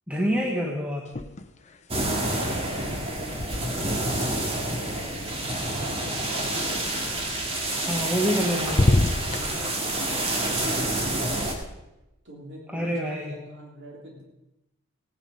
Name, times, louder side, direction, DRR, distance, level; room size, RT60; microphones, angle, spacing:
voice 1, 0.1-1.1 7.9-9.0 12.7-13.3, equal, 5° right, -1 dB, 1.3 m, -27 dB
sound 1, 1.0-1.8 2.0-6.1 7.8-8.4 8.6-9.4, left 2 dB, 35° left, 0.8 m, -28 dB
sound 2, 1.9-11.5, right 1 dB, 30° right, 2.0 m, -28 dB
voice 2, 2.0-6.8 7.6-8.6 9.1-11.5 12.2-14.2, equal, 60° right, -2 dB, 3.3 m, -44 dB
16.5 x 10.0 x 5.3 m, 0.95 s
head